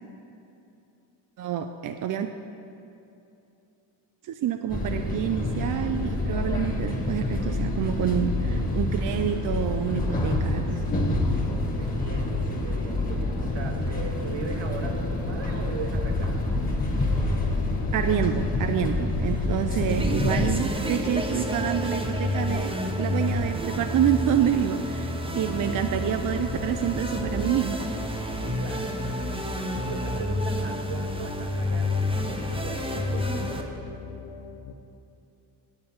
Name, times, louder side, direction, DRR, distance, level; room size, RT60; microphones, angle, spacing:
voice 1, 1.4-2.3 4.2-10.8 17.9-27.8, right 9 dB, 45° right, 7 dB, 0.4 m, -27 dB
sound 1, 4.7-20.5, left 2 dB, 20° left, 1.5 m, -27 dB
voice 2, 11.8-16.5 25.4-25.5 28.6-29.3 29.8-33.8, right 4 dB, 65° right, 3 dB, 1.2 m, -38 dB
sound 2, 17.1-34.7, left 6 dB, 80° left, 0.7 m, -39 dB
sound 3, 19.9-33.6, left 1 dB, 10° right, 0.8 m, -30 dB
8.7 x 8.7 x 4.3 m, 2.8 s
cardioid pair, 95°, 47 cm